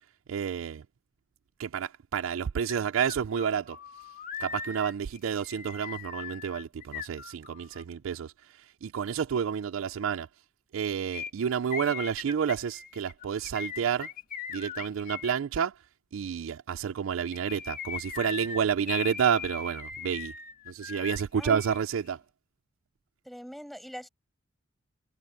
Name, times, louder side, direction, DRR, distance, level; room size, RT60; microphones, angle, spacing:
voice 1, 0.3-0.8 1.6-3.8 4.4-8.3 8.8-10.3 10.7-14.1 14.5-15.7 16.1-20.3 20.7-22.2, right 7 dB, 80° right, 0.4 m, -30 dB
sound 1, 2.7-2.8 3.1-7.8 11.1-15.3 17.2-21.8 22.1-22.2, left 7 dB, 45° left, 1.4 m, -39 dB
voice 2, 23.2-24.1, equal, ahead, 6.2 m, -42 dB
head